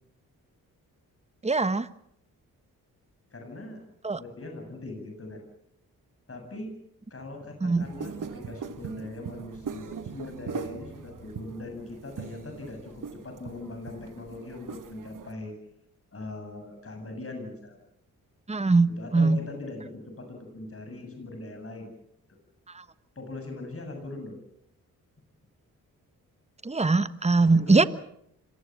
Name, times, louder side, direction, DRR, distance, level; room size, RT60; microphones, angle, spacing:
voice 1, 1.4-1.9 4.0-4.2 7.6-7.8 18.5-19.4 26.6-27.8, right 3 dB, 15° right, 14 dB, 1.3 m, -22 dB
voice 2, 3.3-3.8 4.1-5.4 6.3-6.7 7.1-15.5 16.1-17.8 18.9-21.9 23.2-24.4 27.4-27.9, left 2 dB, 35° left, 4 dB, 7.7 m, -40 dB
sound 1, 7.8-15.3, right 6 dB, 55° right, 1.8 m, -40 dB
26.0 x 19.0 x 7.5 m, 0.73 s
supercardioid pair, 50°, 38 cm